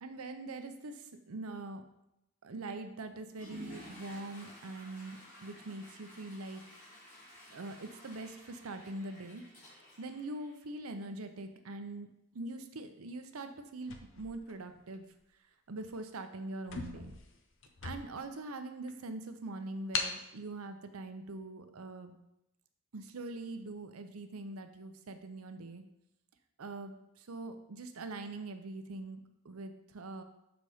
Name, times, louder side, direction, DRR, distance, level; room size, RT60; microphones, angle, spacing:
voice 1, 0.0-1.8 2.4-6.6 7.5-9.4 10.0-15.0 15.7-17.2 17.8-22.2 22.9-25.8 26.6-30.2, right 2 dB, 90° right, 8 dB, 0.7 m, -43 dB
Water / Toilet flush, 3.3-11.0, left 1 dB, 35° left, 2.6 m, -53 dB
sound 1, 13.8-15.1 15.8-16.0 16.3-16.4 16.6-18.4 18.9-19.0 19.9-20.2, left 4 dB, 65° left, 0.7 m, -40 dB
6.9 x 4.1 x 4.9 m, 0.85 s
head